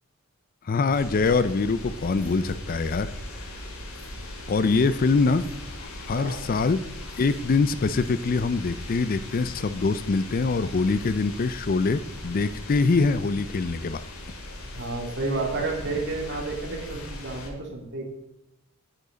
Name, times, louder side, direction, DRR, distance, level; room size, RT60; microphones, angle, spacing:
voice 1, 0.7-3.1 3.4-3.5 4.5-5.4 5.8-6.8 7.2-14.0, left 4 dB, 40° left, 14 dB, 0.4 m, -24 dB
sound 1, 0.9-17.5, left 1 dB, 85° left, 2.2 m, -39 dB
voice 2, 6.1-6.5 14.6-18.0, right 3 dB, 55° right, 0 dB, 2.5 m, -31 dB
9.9 x 8.9 x 4.0 m, 0.90 s
head